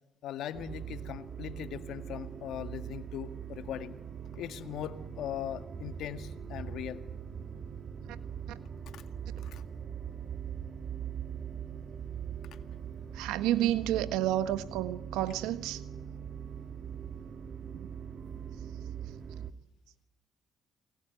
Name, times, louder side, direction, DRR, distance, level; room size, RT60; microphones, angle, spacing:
voice 1, 0.2-3.9 4.3-7.0 8.9-9.0 9.4-9.6, left 10 dB, 75° left, 10 dB, 1.8 m, -40 dB
sound 1, 0.5-19.5, right 8 dB, 50° right, 1.8 m, -41 dB
voice 2, 13.1-15.8 17.7-17.9, right 13 dB, 85° right, 13 dB, 1.3 m, -30 dB
29.0 x 21.5 x 9.5 m, 0.92 s
supercardioid pair, 55°, 0 cm